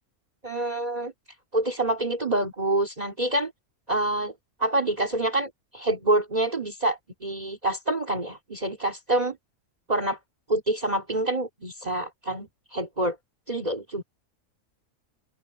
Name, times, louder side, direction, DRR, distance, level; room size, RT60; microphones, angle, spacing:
voice 1, 0.4-1.1 1.5-3.5 3.9-4.3 4.6-9.4 9.9-10.2 10.5-13.2 13.5-14.0, right 2 dB, 30° right, 2.8 m, -27 dB
open air
omnidirectional pair, 1.5 m